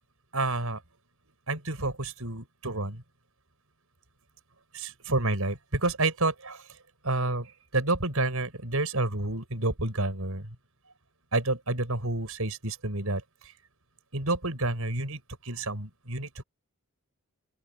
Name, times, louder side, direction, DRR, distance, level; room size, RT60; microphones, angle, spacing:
voice 1, 0.3-0.8 1.5-3.0 4.7-6.6 7.0-10.5 11.3-13.2 14.1-16.4, right 2 dB, 75° right, 5.6 m, -29 dB
open air
head